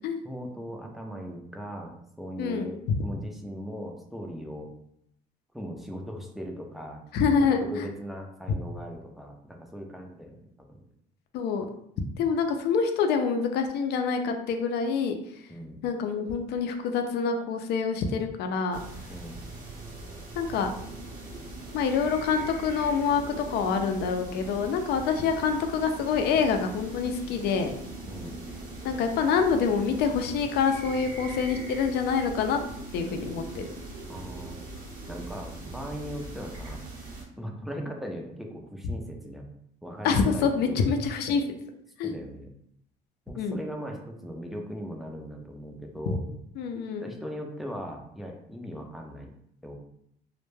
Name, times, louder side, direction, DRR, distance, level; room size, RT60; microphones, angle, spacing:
voice 1, 0.2-4.7 5.5-7.0 7.6-10.4 10.7-10.8 15.5-15.8 19.1-19.4 28.0-28.4 34.1-34.6 35.1-36.8 37.4-39.5 39.8-40.9 42.0-42.5 43.3-46.2 47.0-49.3 49.6-49.7, equal, ahead, 1 dB, 0.4 m, -39 dB
voice 2, 2.4-3.0 7.1-7.9 11.3-11.6 12.0-15.2 15.8-18.8 20.4-20.7 21.7-27.7 28.8-32.6 32.9-33.6 40.0-41.4 42.0-42.1 43.4-43.6 46.6-47.1, left 5 dB, 75° left, 5 dB, 0.4 m, -26 dB
sound 1, 18.7-37.2, right 2 dB, 55° right, 0.8 m, -41 dB
2.1 x 2.1 x 3.1 m, 0.72 s
cardioid pair, 110°, 17 cm